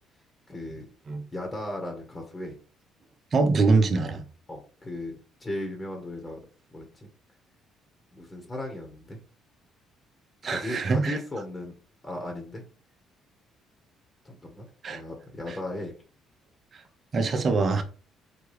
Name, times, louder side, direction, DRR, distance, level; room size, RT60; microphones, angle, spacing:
voice 1, 0.5-0.9 1.3-2.6 4.5-6.4 6.7-7.1 8.1-9.2 10.4-11.7 12.0-12.7 14.2-15.9, left 1 dB, 30° left, 1.2 m, -36 dB
voice 2, 3.3-4.2 10.4-11.2 14.8-15.0 15.5-15.6 16.7-16.8 17.1-17.8, right 3 dB, 45° right, 0.7 m, -24 dB
4.0 x 2.3 x 3.3 m
hypercardioid pair, 60°, 0 cm